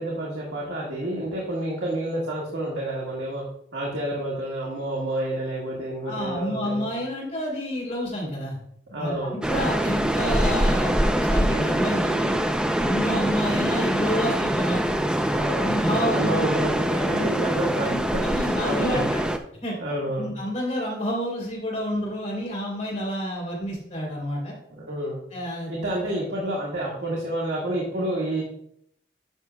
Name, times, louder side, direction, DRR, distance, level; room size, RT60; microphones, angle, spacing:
voice 1, 0.0-3.4 3.7-6.9 8.9-9.4 15.3-15.8 16.1-19.1 19.8-20.3 24.8-25.2 25.7-28.4, right 1 dB, 85° right, -4 dB, 1.7 m, -29 dB
voice 2, 6.0-8.6 9.0-12.3 12.8-14.8 15.6-16.4 17.1-17.3 17.8-19.3 19.6-19.7 20.2-24.5 25.3-25.7, equal, 40° left, -3 dB, 3.2 m, -29 dB
sound 1, 9.4-19.4, right 1 dB, 5° right, 0.4 m, -24 dB
10.5 x 6.1 x 2.3 m, 0.68 s
head